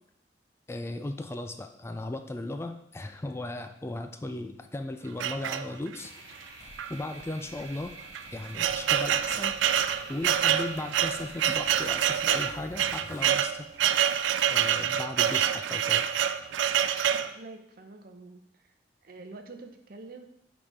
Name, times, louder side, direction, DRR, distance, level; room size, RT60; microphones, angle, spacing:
voice 1, 0.7-6.1 6.9-7.9 8.3-9.5 10.1-13.7 14.5-16.1, left 2 dB, 15° left, 7 dB, 0.3 m, -36 dB
sound 1, 5.2-6.1 6.8-6.9 7.2-7.3 8.0-17.3, right 10 dB, 80° right, 0.3 m, -26 dB
sound 2, 6.0-12.7, right 2 dB, 20° right, 1.1 m, -49 dB
Zipper (clothing), 6.4-14.4, equal, 40° left, 2.0 m, -52 dB
voice 2, 17.2-18.7 19.0-20.3, right 3 dB, 55° right, 6 dB, 0.7 m, -46 dB
8.4 x 4.0 x 3.6 m, 0.77 s
head